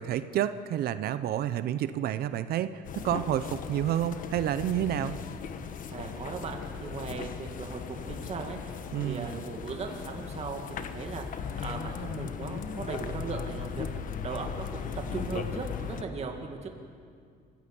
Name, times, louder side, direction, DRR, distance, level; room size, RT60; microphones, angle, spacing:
voice 1, 0.0-5.1 8.9-9.4, right 11 dB, 65° right, 12 dB, 0.7 m, -29 dB
sound 1, 2.8-16.0, left 6 dB, 50° left, 1.3 m, -37 dB
voice 2, 5.9-8.8 9.0-11.3 11.6-16.7, right 4 dB, 40° right, 3 dB, 2.0 m, -38 dB
24.5 x 15.5 x 7.0 m, 2.2 s
cardioid pair, 110°, 17 cm